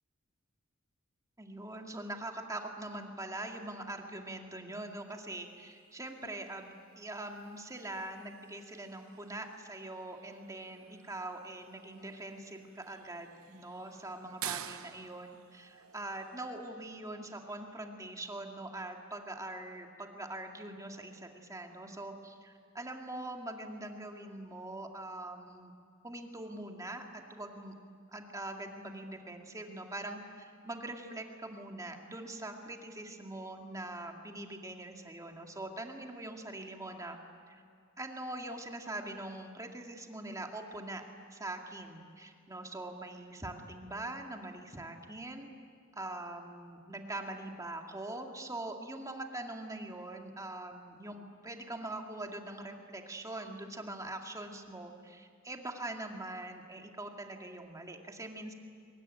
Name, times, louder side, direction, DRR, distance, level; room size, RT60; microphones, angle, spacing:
voice 1, 1.4-25.7 26.0-27.7 28.1-37.2 37.5-37.6 38.0-41.0 41.3-45.5 45.9-58.5, right 2 dB, 15° right, 2 dB, 2.2 m, -43 dB
sound 1, 6.0-17.9, right 10 dB, 80° right, 0.9 m, -50 dB
23.5 x 21.5 x 10.0 m, 2.1 s
head